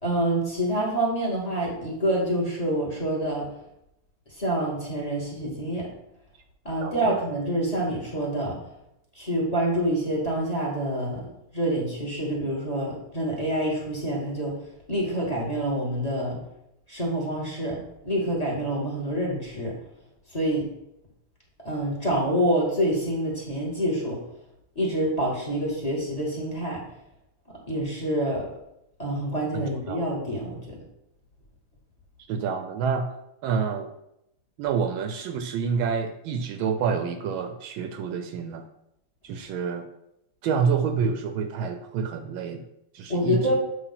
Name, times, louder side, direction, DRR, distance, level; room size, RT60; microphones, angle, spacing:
voice 1, 0.0-3.5 4.4-5.9 6.6-8.6 9.1-11.2 11.5-14.5 14.9-16.4 16.9-19.8 20.3-20.6 21.6-24.2 24.7-26.8 27.7-28.5 29.0-30.6 43.1-43.5, right 1 dB, 20° left, -3 dB, 1.4 m, -27 dB
voice 2, 6.8-7.2 29.5-30.0 32.3-33.1 33.4-33.9 34.6-38.6 39.2-39.9 40.4-42.6 42.9-43.5, right 6 dB, 75° right, 7 dB, 1.3 m, -28 dB
8.1 x 2.8 x 5.6 m, 0.82 s
omnidirectional pair, 2.3 m